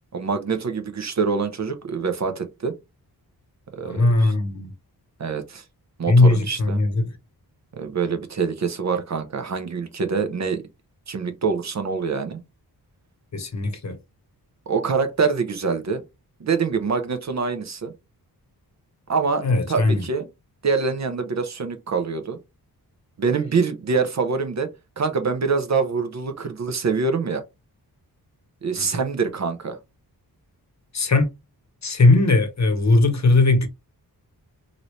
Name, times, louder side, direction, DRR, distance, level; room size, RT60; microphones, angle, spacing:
voice 1, 0.1-2.7 3.7-4.3 5.2-5.6 6.0-6.8 7.7-10.6 11.1-12.4 14.7-16.0 16.4-17.9 19.1-20.3 20.6-22.4 23.2-24.7 25.0-27.4 28.6-29.8, right 5 dB, 45° right, 0.6 m, -25 dB
voice 2, 3.8-4.7 6.1-7.0 13.3-14.0 19.4-20.0 28.8-28.9 30.9-31.3 31.8-33.7, left 2 dB, 45° left, 0.9 m, -18 dB
3.0 x 2.6 x 3.1 m
wide cardioid pair, 120°, 39 cm